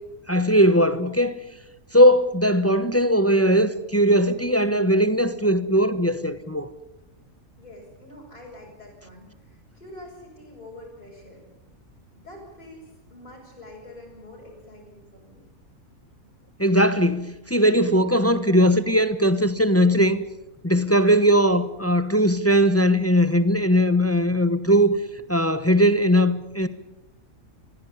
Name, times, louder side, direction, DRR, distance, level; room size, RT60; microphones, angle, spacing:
voice 1, 0.3-1.4 1.9-6.7 16.6-20.2 20.6-24.9 25.3-26.7, equal, 10° left, 0.9 m, -19 dB
voice 2, 7.6-11.5 12.2-15.4, left 1 dB, 30° left, 7.1 m, -45 dB
22.0 x 16.0 x 10.0 m
omnidirectional pair, 1.5 m